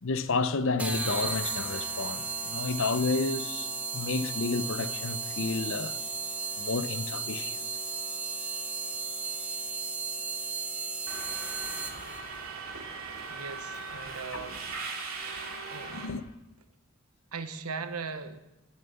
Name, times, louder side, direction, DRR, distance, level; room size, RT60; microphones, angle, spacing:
voice 1, 0.0-5.9 6.6-7.6 15.9-16.2, left 3 dB, 60° left, 0.7 m, -31 dB
sound 1, 0.8-12.2, right 4 dB, 5° right, 1.1 m, -34 dB
Subway metro underground, 11.1-16.1, right 4 dB, 70° right, 2.7 m, -39 dB
voice 2, 13.3-14.7 15.7-16.0 17.3-18.4, right 5 dB, 85° right, 1.1 m, -39 dB
19.0 x 7.4 x 6.9 m
head